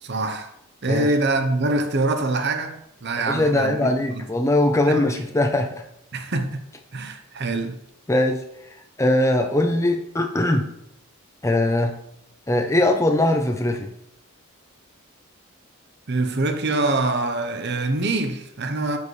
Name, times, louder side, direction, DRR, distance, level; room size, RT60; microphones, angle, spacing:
voice 1, 0.0-0.5 0.8-4.2 4.9-5.0 6.1-6.7 6.9-7.8 16.1-19.0, right 2 dB, 50° right, 0.8 m, -24 dB
voice 2, 3.3-5.7 8.1-8.4 9.0-10.7 11.4-11.9 12.5-13.9, left 1 dB, 15° left, 0.6 m, -21 dB
9.4 x 5.4 x 3.2 m
head